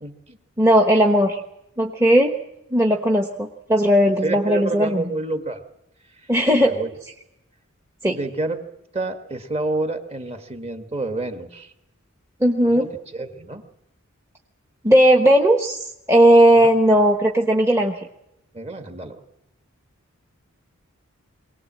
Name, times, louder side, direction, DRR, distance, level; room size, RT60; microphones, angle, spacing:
voice 1, 0.0-0.4 4.2-5.6 6.6-6.9 8.1-8.6 8.9-11.7 12.6-13.6 16.5-16.7 18.5-19.2, right 2 dB, 25° right, 6 dB, 1.7 m, -28 dB
voice 2, 0.6-1.4 1.8-2.4 2.7-5.0 6.3-6.7 8.0-8.2 12.4-12.9 14.8-18.1, right 1 dB, 10° right, 2 dB, 1.0 m, -17 dB
23.5 x 18.5 x 7.6 m, 0.85 s
head